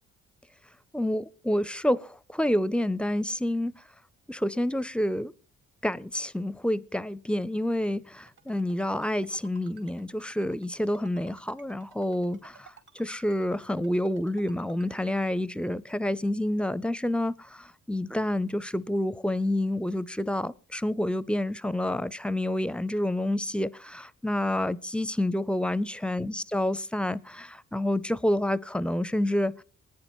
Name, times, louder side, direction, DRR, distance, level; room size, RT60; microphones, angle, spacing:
voice 1, 0.9-3.7 4.3-5.3 5.8-12.7 13.0-29.6, left 1 dB, 5° left, 0.5 m, -28 dB
Ringtone, 8.3-15.1, right 6 dB, 65° right, 4.1 m, -54 dB
19.5 x 9.6 x 3.1 m
supercardioid pair, 60°, 32 cm